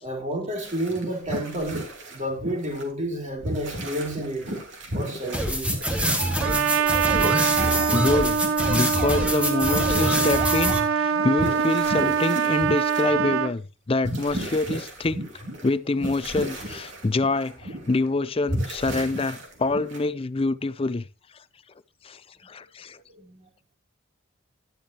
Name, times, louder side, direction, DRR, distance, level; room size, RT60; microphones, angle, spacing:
voice 1, 0.0-4.5 4.9-5.8 7.4-7.7 23.1-23.5, right 1 dB, 35° right, 3.0 m, -31 dB
sound 1, 0.6-2.8 3.4-6.5 6.7-8.7 9.0-9.2 9.6-13.5 14.0-15.7 16.0-18.1 18.5-20.0, equal, 60° right, 3.0 m, -34 dB
sound 2, 5.3-10.8, equal, 5° right, 1.6 m, -25 dB
Trumpet, 6.4-13.5, right 7 dB, 90° right, 0.7 m, -24 dB
voice 2, 7.9-8.4 8.7-15.2 15.6-21.1 22.0-23.0, left 2 dB, 25° left, 0.4 m, -26 dB
11.5 x 10.5 x 2.9 m
head